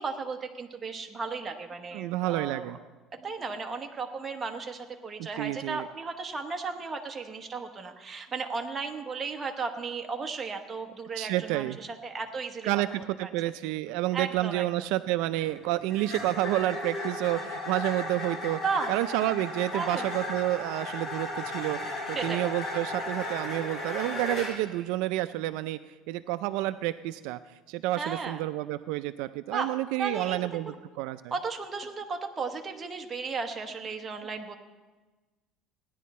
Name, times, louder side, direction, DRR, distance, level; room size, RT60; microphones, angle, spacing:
voice 1, 0.0-2.8 3.1-13.5 14.1-14.7 18.6-18.9 19.7-20.1 22.1-22.4 28.0-28.4 29.5-29.7 30.0-30.7 31.3-34.6, right 4 dB, 20° right, 3 dB, 1.0 m, -35 dB
voice 2, 1.9-2.8 5.4-5.9 11.2-11.8 12.6-18.6 18.9-31.3, right 16 dB, 75° right, 12 dB, 0.3 m, -30 dB
sound 1, 15.3-24.7, left 2 dB, 40° left, 4.9 m, -35 dB
16.5 x 10.0 x 4.2 m, 1.3 s
cardioid pair, 150°, 0 cm